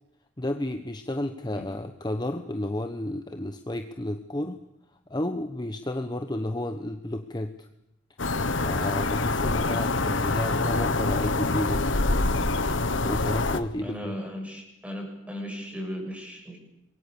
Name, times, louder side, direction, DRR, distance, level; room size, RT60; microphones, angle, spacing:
voice 1, 0.4-4.6 5.1-7.7 8.6-11.9 13.0-14.1, left 1 dB, 20° left, 7 dB, 1.1 m, -32 dB
sound 1, 8.2-13.6, left 3 dB, 85° left, 1.5 m, -25 dB
voice 2, 13.8-16.6, equal, 5° right, 1 dB, 7.4 m, -36 dB
27.0 x 22.5 x 7.0 m, 0.86 s
head